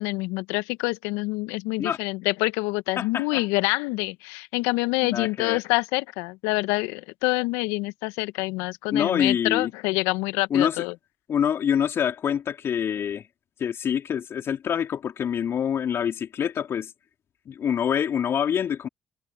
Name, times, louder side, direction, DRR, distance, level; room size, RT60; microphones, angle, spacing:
voice 1, 0.0-10.9, left 24 dB, 80° left, 1.7 m, -26 dB
voice 2, 3.0-3.4 5.0-5.6 8.9-9.7 10.5-10.9 11.3-13.2 13.6-16.9 17.5-18.9, left 8 dB, 60° left, 3.7 m, -26 dB
hypercardioid pair, 40°, 5 cm